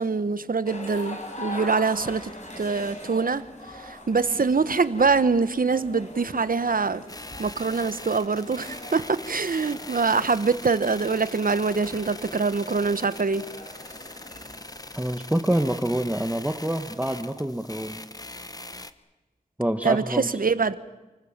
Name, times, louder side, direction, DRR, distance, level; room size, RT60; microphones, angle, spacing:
voice 1, 0.0-2.3 2.6-3.4 3.7-7.0 7.4-13.4 19.8-20.7, right 4 dB, 80° right, 1.0 m, -24 dB
sound 1, 0.7-15.1, left 1 dB, 55° left, 5.5 m, -42 dB
sound 2, 7.1-18.9, left 1 dB, 25° left, 1.3 m, -41 dB
voice 2, 14.9-18.0 19.6-20.3, right 1 dB, 10° right, 1.3 m, -26 dB
29.0 x 19.5 x 7.3 m
wide cardioid pair, 55°, 14 cm